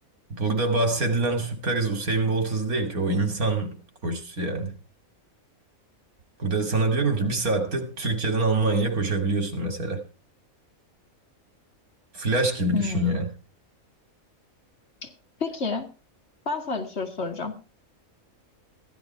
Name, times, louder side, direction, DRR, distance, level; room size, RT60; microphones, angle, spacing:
voice 1, 0.3-3.7 4.0-4.7 6.4-10.0 12.1-13.3, right 2 dB, 85° right, 3.1 m, -25 dB
voice 2, 12.7-13.2 15.0-15.1 15.4-15.9 16.5-17.6, left 4 dB, 50° left, 2.3 m, -30 dB
15.5 x 11.5 x 4.6 m
omnidirectional pair, 1.5 m